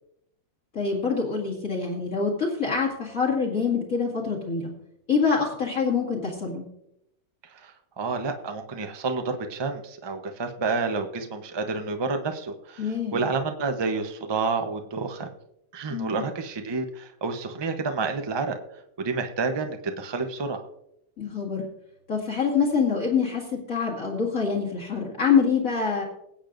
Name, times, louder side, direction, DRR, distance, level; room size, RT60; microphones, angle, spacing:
voice 1, 0.7-4.7 5.1-6.6 12.8-13.2 15.9-16.3 21.2-21.7 22.1-26.0, left 5 dB, 45° left, -1 dB, 2.4 m, -25 dB
voice 2, 8.0-15.3 15.7-18.6 19.0-20.6, right 4 dB, 30° right, 6 dB, 0.4 m, -29 dB
21.0 x 8.8 x 2.6 m, 0.81 s
omnidirectional pair, 2.1 m